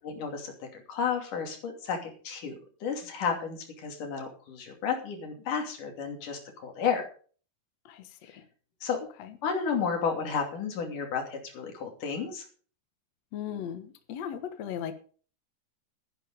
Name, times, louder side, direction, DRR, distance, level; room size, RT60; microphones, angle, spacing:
voice 1, 0.0-7.0 8.8-9.0 9.4-12.4, left 6 dB, 50° left, 3 dB, 4.0 m, -32 dB
voice 2, 13.3-14.9, left 9 dB, 75° left, 8 dB, 1.6 m, -36 dB
13.5 x 10.0 x 5.0 m, 0.41 s
omnidirectional pair, 4.9 m